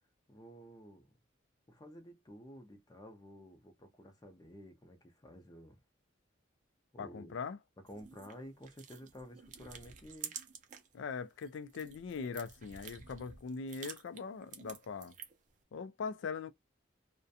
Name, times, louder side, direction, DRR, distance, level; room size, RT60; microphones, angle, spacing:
voice 1, 0.3-1.1 1.7-5.8 6.9-7.4 7.8-10.3, equal, 20° left, 0.5 m, -52 dB
voice 2, 7.0-7.6 10.9-15.1 15.7-16.5, left 5 dB, 75° left, 0.4 m, -41 dB
sound 1, 7.9-10.9 11.3-15.5, right 7 dB, 40° right, 0.5 m, -50 dB
2.4 x 2.1 x 2.6 m
head